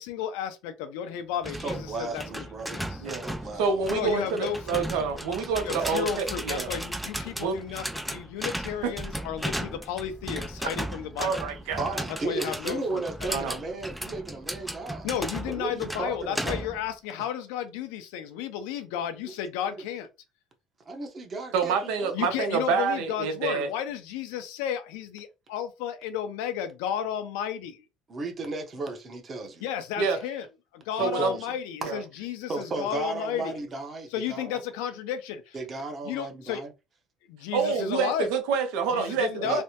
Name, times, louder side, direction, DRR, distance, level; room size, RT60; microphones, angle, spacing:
voice 1, 0.0-2.4 2.7-3.0 3.9-4.9 5.6-11.3 12.2-13.4 15.0-20.1 22.1-27.8 29.6-30.5 30.7-33.5 34.1-35.6 36.0-36.6 37.3-38.3 38.9-39.6, left 9 dB, 85° left, 0.6 m, -33 dB
sound 1, 1.4-16.9, equal, ahead, 0.3 m, -36 dB
voice 2, 1.6-4.3 5.4-5.9 11.7-15.1 15.5-16.7 19.2-19.3 19.7-19.8 20.9-22.9 28.1-29.7 31.0-31.6 31.8-31.9 32.5-34.6 35.5-36.7 39.4-39.6, right 3 dB, 30° right, 0.9 m, -35 dB
voice 3, 3.6-6.7 7.4-7.6 8.8-8.9 11.2-12.0 13.3-13.5 21.5-23.7 30.0-30.2 31.0-31.3 31.8-32.0 37.5-39.6, right 5 dB, 80° right, 0.8 m, -27 dB
3.3 x 2.1 x 2.8 m
cardioid pair, 115°, 0 cm